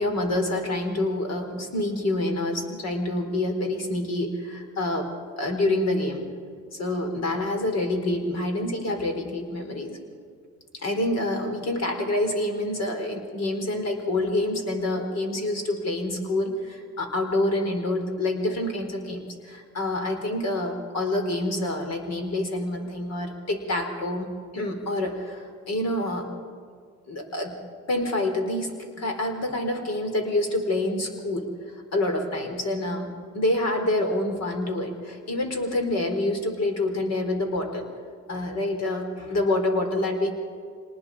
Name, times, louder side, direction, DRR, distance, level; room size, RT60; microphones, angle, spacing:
voice 1, 0.0-5.1 5.4-6.3 6.7-10.0 10.8-26.3 27.1-27.6 27.9-31.5 31.9-33.1 33.3-37.9 38.3-40.3, left 1 dB, 60° left, 4 dB, 4.3 m, -27 dB
25.5 x 20.0 x 5.0 m, 2.1 s
cardioid pair, 90°, 30 cm